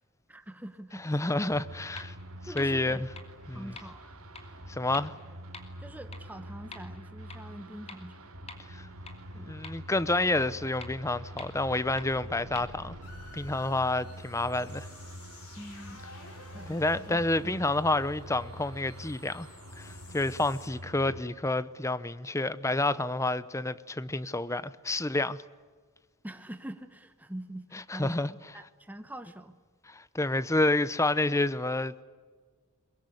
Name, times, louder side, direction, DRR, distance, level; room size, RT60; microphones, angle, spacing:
voice 1, 0.3-1.2 2.5-3.0 3.5-4.2 5.8-8.3 15.6-16.0 16.5-17.6 26.2-29.6, right 1 dB, 5° right, 1.0 m, -44 dB
voice 2, 1.0-2.1 2.5-3.1 3.5-3.7 4.7-5.1 8.7-8.9 9.4-13.0 13.3-14.9 16.7-19.5 19.8-25.4 27.7-28.3 29.9-32.0, left 2 dB, 15° left, 0.7 m, -29 dB
sound 1, 1.4-1.5 2.0-2.1 2.6-2.7 3.2-3.3 3.8-3.9 4.3-4.4 4.9-5.0 5.5-5.6 6.1-6.2 6.7-6.8 7.3-7.4 7.9-8.0 8.5-8.6 9.1-9.2 9.6-9.7 10.2-10.3 10.8-10.9 11.4-11.5 12.0-12.1 12.6-12.7, left 4 dB, 30° left, 2.8 m, -44 dB
sound 2, 1.5-21.2, right 1 dB, 75° right, 2.7 m, -46 dB
sound 3, 11.6-20.7, left 2 dB, 85° left, 6.0 m, -52 dB
23.0 x 22.0 x 9.8 m
head